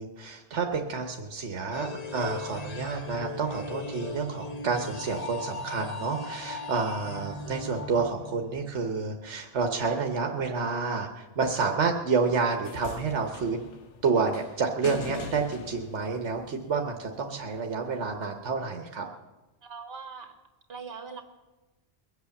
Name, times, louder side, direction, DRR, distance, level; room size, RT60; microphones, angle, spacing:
voice 1, 0.0-13.7 14.0-19.1, right 4 dB, 85° right, 4 dB, 1.4 m, -29 dB
sound 1, 1.7-8.7, left 2 dB, 35° left, 1.1 m, -38 dB
voice 2, 6.9-7.4 19.6-20.4 20.7-21.2, right 5 dB, 60° right, 5 dB, 2.0 m, -42 dB
sound 2, 12.6-17.0 18.1-18.2, left 5 dB, 85° left, 1.4 m, -41 dB
22.0 x 8.3 x 7.1 m, 1.1 s
omnidirectional pair, 1.2 m